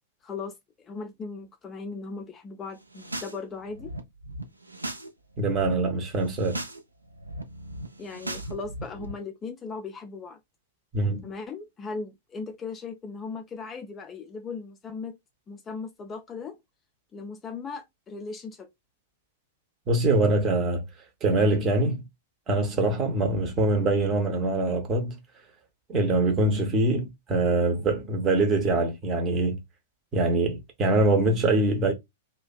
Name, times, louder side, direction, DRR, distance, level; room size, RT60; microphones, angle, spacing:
voice 1, 0.2-3.9 8.0-10.4 11.2-15.1 15.5-16.5 17.1-18.7, left 4 dB, 20° left, 0.3 m, -38 dB
sound 1, 2.8-3.4 3.6-5.1 5.3-5.7 6.2-6.8 7.1-9.1, right 1 dB, 85° right, 0.4 m, -38 dB
voice 2, 5.4-6.6 10.9-11.3 19.9-20.8 21.2-22.0 22.5-25.2 25.9-29.6 30.1-31.9, right 2 dB, 25° right, 0.6 m, -24 dB
2.5 x 2.1 x 2.4 m
figure-of-eight pair, 100°, 0 cm